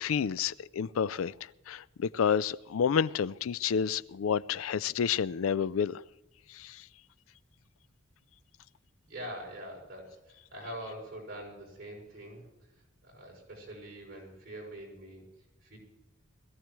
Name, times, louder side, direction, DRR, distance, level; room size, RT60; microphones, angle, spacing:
voice 1, 0.0-1.3 1.7-6.0 6.5-6.9, left 7 dB, 90° left, 20 dB, 0.4 m, -29 dB
voice 2, 9.0-12.5 13.0-15.2 15.6-15.8, equal, 50° right, -2 dB, 6.6 m, -44 dB
21.5 x 15.0 x 3.1 m, 0.89 s
head